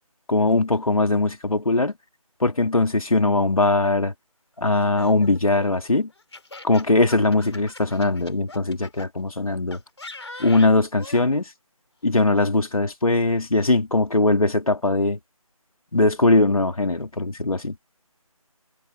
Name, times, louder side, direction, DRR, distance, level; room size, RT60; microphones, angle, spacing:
voice 1, 0.3-1.9 2.4-4.1 4.6-6.1 6.6-9.8 10.4-11.5 12.0-15.2 15.9-17.7, left 2 dB, 70° left, 3.3 m, -20 dB
Laughter, 4.7-9.1 9.7-11.3, left 2 dB, 45° left, 3.7 m, -41 dB
figure-of-eight pair, 175°, 19 cm